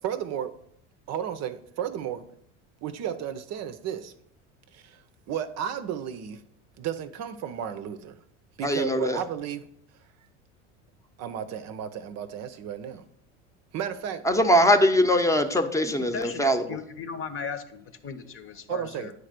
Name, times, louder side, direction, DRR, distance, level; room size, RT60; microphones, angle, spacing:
voice 1, 0.0-0.6 1.1-2.3 2.8-4.1 4.7-6.4 6.8-8.2 8.6-9.7 11.2-13.0 13.7-14.2 18.7-19.1, right 9 dB, 45° right, 0.6 m, -33 dB
voice 2, 8.6-9.2 14.3-16.8, equal, 10° left, 0.8 m, -22 dB
voice 3, 15.8-19.1, left 6 dB, 35° left, 0.9 m, -37 dB
9.4 x 3.3 x 6.5 m
hypercardioid pair, 85°, 36 cm